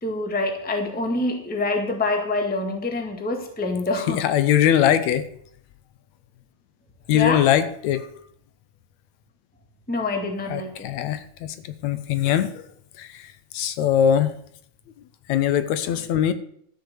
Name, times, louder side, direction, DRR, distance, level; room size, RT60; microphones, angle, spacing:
voice 1, 0.0-4.2 7.1-7.4 9.9-10.9, left 2 dB, 5° left, 3 dB, 0.9 m, -26 dB
voice 2, 4.1-5.2 7.1-8.1 10.5-11.6 11.8-12.6 13.0-13.2 13.5-14.3 15.3-16.3, left 10 dB, 75° left, 12 dB, 1.9 m, -21 dB
13.0 x 6.6 x 7.0 m, 0.67 s
omnidirectional pair, 3.4 m